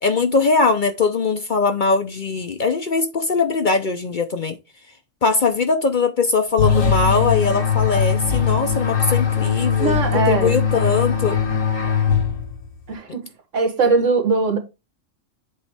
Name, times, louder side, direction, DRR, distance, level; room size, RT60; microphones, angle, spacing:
voice 1, 0.0-4.6 5.2-11.4, left 4 dB, 50° left, 0.7 m, -21 dB
sound 1, 6.6-12.7, left 7 dB, 85° left, 1.8 m, -20 dB
voice 2, 9.8-10.5 12.9-13.3 13.5-14.6, right 4 dB, 75° right, 1.8 m, -20 dB
7.8 x 3.1 x 4.7 m
omnidirectional pair, 1.3 m